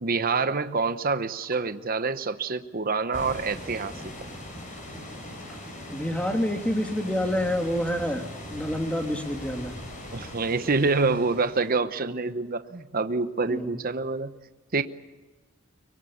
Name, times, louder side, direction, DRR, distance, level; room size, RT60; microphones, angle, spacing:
voice 1, 0.0-4.1 10.1-14.3 14.7-14.8, right 4 dB, 45° right, 10 dB, 0.9 m, -26 dB
sound 1, 3.1-11.8, left 1 dB, 40° left, 6.6 m, -40 dB
voice 2, 5.9-9.8 13.5-13.7, equal, 5° left, 4 dB, 2.5 m, -28 dB
24.5 x 22.0 x 8.6 m, 1.2 s
head